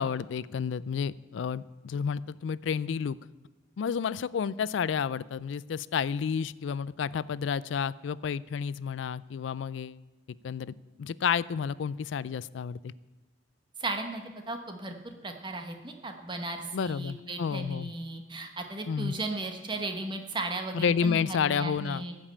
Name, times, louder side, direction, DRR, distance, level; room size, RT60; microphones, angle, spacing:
voice 1, 0.0-3.2 3.8-10.0 10.4-10.7 11.0-12.9 16.7-17.9 18.9-19.1 20.7-22.1, left 6 dB, 70° left, 20 dB, 0.3 m, -30 dB
voice 2, 13.8-14.9 15.2-22.1, right 2 dB, 25° right, 5 dB, 1.1 m, -36 dB
14.5 x 5.3 x 8.6 m, 1.2 s
head